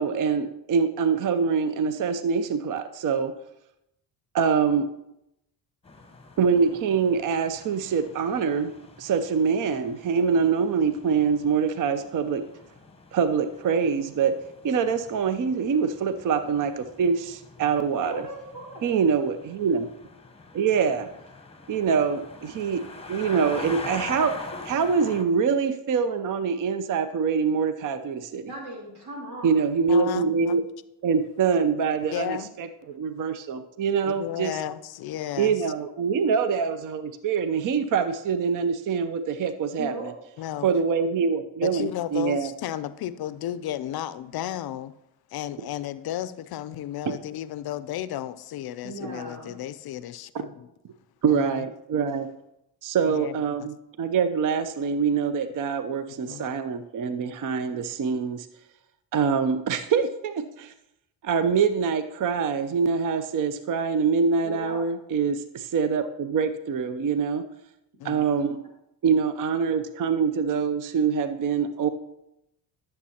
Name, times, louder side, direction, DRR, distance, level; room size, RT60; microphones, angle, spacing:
voice 1, 0.0-3.3 4.3-4.9 6.4-8.7 9.0-12.4 13.1-14.3 14.6-18.2 18.8-19.9 20.5-21.1 21.7-22.8 23.1-24.3 24.7-28.5 29.4-30.6 31.0-34.6 35.4-40.1 40.6-42.5 51.2-52.3 52.8-58.5 59.1-60.7 61.2-67.5 68.0-68.6 69.0-71.9, right 6 dB, 40° right, 0.6 m, -24 dB
sound 1, 5.9-25.2, left 3 dB, 10° left, 0.9 m, -44 dB
voice 2, 18.0-18.9 24.5-24.6 28.5-29.5 39.8-40.1 48.8-49.5 64.4-64.8, equal, 85° right, 2.5 m, -37 dB
voice 3, 29.9-30.6 32.1-32.5 34.0-35.6 40.4-40.7 41.6-44.9 45.3-50.7 51.3-51.7 53.0-53.7 56.3-56.4 68.0-68.3, left 12 dB, 55° left, 0.5 m, -33 dB
11.0 x 6.6 x 2.9 m
supercardioid pair, 60°, 47 cm